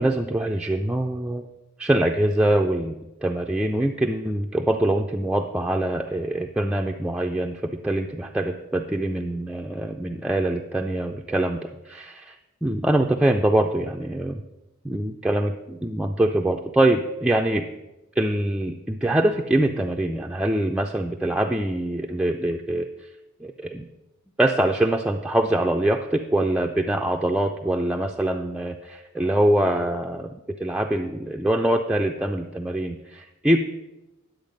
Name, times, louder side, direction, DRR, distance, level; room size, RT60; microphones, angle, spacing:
voice 1, 0.0-1.5 1.8-12.4 12.6-14.4 14.8-17.7 18.2-22.9 23.4-23.9 24.4-30.3 30.6-33.6, right 1 dB, 5° right, 2 dB, 0.4 m, -24 dB
10.5 x 7.8 x 5.2 m, 1.0 s
head